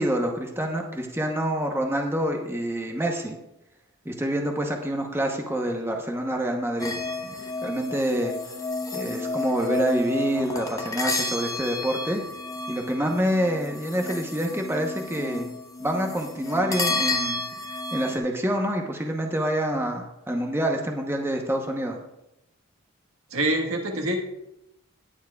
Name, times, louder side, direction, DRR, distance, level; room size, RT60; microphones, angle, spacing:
voice 1, 0.0-3.4 4.0-6.9 7.6-8.4 8.9-12.2 12.7-15.5 15.8-17.4 17.9-22.0, right 1 dB, 10° right, 2 dB, 0.9 m, -27 dB
sound 1, 6.8-18.2, left 2 dB, 15° left, 1.0 m, -31 dB
voice 2, 23.3-24.2, right 1 dB, 80° right, 2 dB, 1.4 m, -25 dB
18.5 x 7.3 x 2.3 m, 0.88 s
head